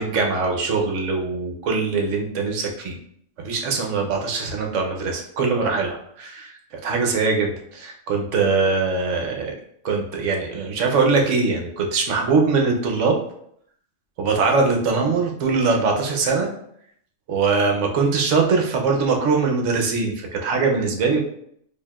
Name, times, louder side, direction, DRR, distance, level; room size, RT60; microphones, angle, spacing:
voice 1, 0.0-2.9 3.4-6.5 6.8-9.5 9.8-13.2 14.2-16.5 17.3-21.2, right 4 dB, 65° right, 2 dB, 1.0 m, -22 dB
4.6 x 2.8 x 2.3 m, 0.68 s
omnidirectional pair, 1.4 m